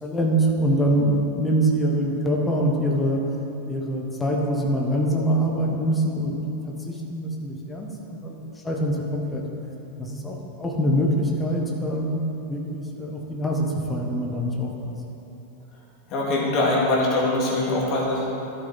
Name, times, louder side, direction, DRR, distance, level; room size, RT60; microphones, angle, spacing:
voice 1, 0.0-3.2 3.7-6.4 6.8-9.4 10.0-12.2 12.5-14.9, right 1 dB, 10° left, -1 dB, 1.2 m, -24 dB
voice 2, 16.1-18.2, left 2 dB, 35° left, -4 dB, 2.1 m, -22 dB
11.5 x 6.6 x 4.1 m, 3.0 s
figure-of-eight pair, 90°, 0 cm